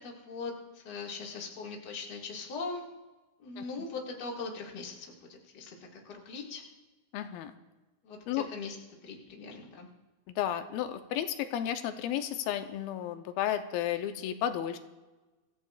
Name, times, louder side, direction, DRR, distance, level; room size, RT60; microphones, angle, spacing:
voice 1, 0.0-2.8 3.4-5.8 6.1-6.6 8.0-8.8 9.0-9.9, left 4 dB, 35° left, -1 dB, 1.9 m, -40 dB
voice 2, 7.1-7.5 8.3-8.5 10.3-14.8, left 11 dB, 90° left, 8 dB, 2.6 m, -33 dB
25.5 x 14.5 x 2.4 m, 1.2 s
omnidirectional pair, 4.2 m